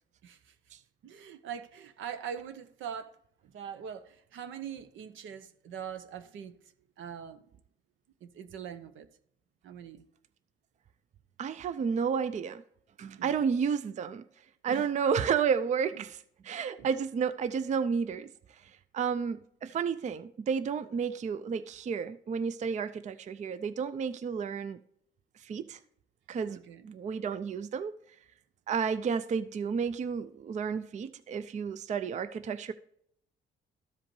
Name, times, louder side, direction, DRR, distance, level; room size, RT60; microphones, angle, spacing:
voice 1, 0.2-0.5 1.0-3.2 3.4-7.4 8.2-9.1 9.6-10.0 13.2-13.5 14.7-14.9 16.0-16.1 16.8-16.9 19.6-19.8 26.5-26.9, right 8 dB, 75° right, 0.7 m, -43 dB
voice 2, 11.4-12.6 13.0-14.2 14.6-16.2 16.4-24.8 25.4-25.8 26.3-26.6 26.8-27.9 28.7-32.7, right 6 dB, 35° right, 0.4 m, -31 dB
13.5 x 5.0 x 3.1 m
cardioid pair, 90°, 20 cm